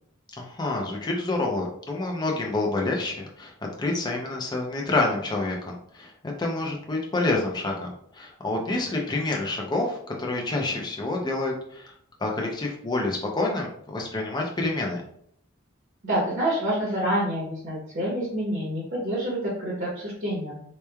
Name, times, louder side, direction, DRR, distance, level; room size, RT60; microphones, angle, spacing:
voice 1, 0.4-3.5 3.8-11.9 12.2-15.0, left 2 dB, 20° left, 0 dB, 0.4 m, -28 dB
voice 2, 16.0-20.6, right 1 dB, 50° right, -6 dB, 0.9 m, -27 dB
3.0 x 2.2 x 2.2 m, 0.66 s
head